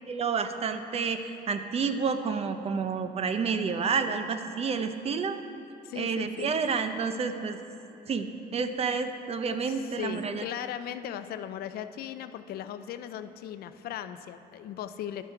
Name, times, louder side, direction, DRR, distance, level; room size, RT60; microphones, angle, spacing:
voice 1, 0.1-1.2 1.5-5.4 6.0-7.6 8.1-8.3 8.5-10.4, right 5 dB, 35° right, 9 dB, 0.6 m, -29 dB
voice 2, 5.8-6.5 9.6-15.2, left 10 dB, 65° left, 11 dB, 0.5 m, -38 dB
11.0 x 7.4 x 4.5 m, 2.7 s
cardioid pair, 110°, 17 cm